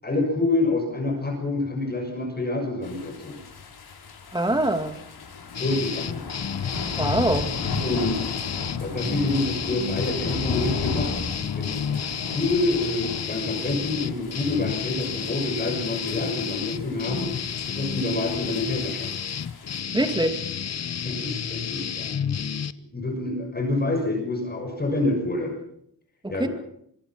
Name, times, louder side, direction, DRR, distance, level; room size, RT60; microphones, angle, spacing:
voice 1, 0.0-3.4 5.6-6.2 7.8-8.4 8.8-11.1 11.6-11.8 12.3-19.1 21.0-22.4 22.9-25.5 26.3-26.5, left 2 dB, 25° left, 2 dB, 6.3 m, -27 dB
sound 1, 2.8-19.8, left 4 dB, 70° left, 5.9 m, -35 dB
voice 2, 4.3-5.0 7.0-7.5 19.9-20.4 26.2-26.5, right 1 dB, 10° right, 7 dB, 2.3 m, -24 dB
sound 2, 5.5-22.7, left 7 dB, 40° left, 0.9 m, -31 dB
25.0 x 24.0 x 5.9 m, 0.72 s
wide cardioid pair, 130°, 39 cm